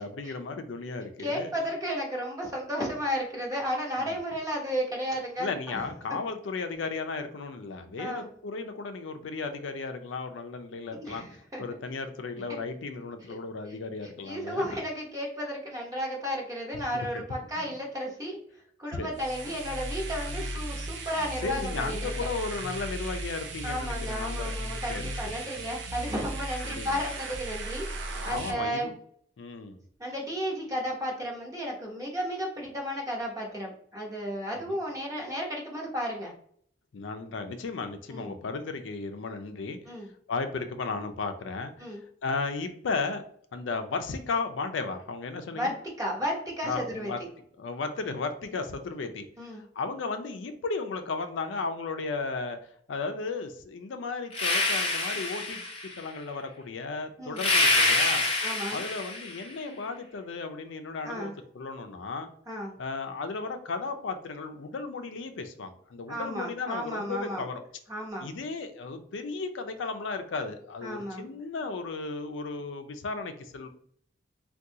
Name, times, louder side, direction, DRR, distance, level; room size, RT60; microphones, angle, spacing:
voice 1, 0.0-1.5 4.0-4.2 5.4-11.2 11.6-14.8 16.9-17.2 17.6-17.7 18.9-19.1 21.4-25.1 26.6-27.0 27.9-28.9 29.4-29.8 34.7-34.8 36.9-39.8 40.3-41.9 42.2-43.2 43.5-45.7 46.6-47.2 47.6-49.3 49.8-52.6 52.9-58.2 58.7-62.3 62.8-67.6 68.2-73.7, left 4 dB, 85° left, 7 dB, 0.4 m, -35 dB
voice 2, 1.2-5.8 8.0-8.3 11.0-11.6 13.3-13.4 14.2-18.4 18.8-22.1 23.6-27.9 28.2-28.9 30.0-36.3 38.1-38.3 39.9-40.1 41.8-42.0 45.5-47.1 49.4-49.7 57.2-57.4 58.4-58.8 61.0-61.3 62.5-62.7 66.1-67.5 67.9-68.3 70.8-71.3, equal, 20° right, -1 dB, 0.8 m, -33 dB
sound 1, 19.1-28.5, right 1 dB, 70° right, 0.5 m, -36 dB
sound 2, 54.3-56.0 57.4-59.4, left 2 dB, 30° left, 0.7 m, -26 dB
3.6 x 2.3 x 2.7 m, 0.62 s
head